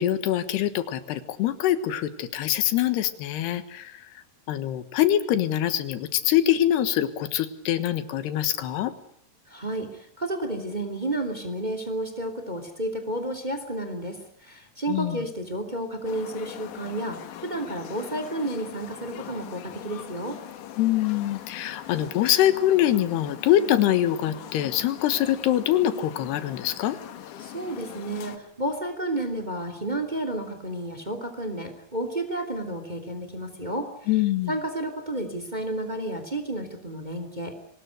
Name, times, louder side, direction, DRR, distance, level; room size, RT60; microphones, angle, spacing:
voice 1, 0.0-4.1 4.5-8.9 14.9-15.2 20.8-27.0 34.1-34.5, left 12 dB, 90° left, 12 dB, 3.5 m, -24 dB
voice 2, 9.5-20.4 27.4-33.9 34.5-37.5, right 1 dB, 10° right, 8 dB, 2.6 m, -31 dB
sound 1, 16.0-28.4, left 11 dB, 60° left, 2.6 m, -42 dB
24.5 x 19.5 x 8.0 m, 0.71 s
omnidirectional pair, 4.6 m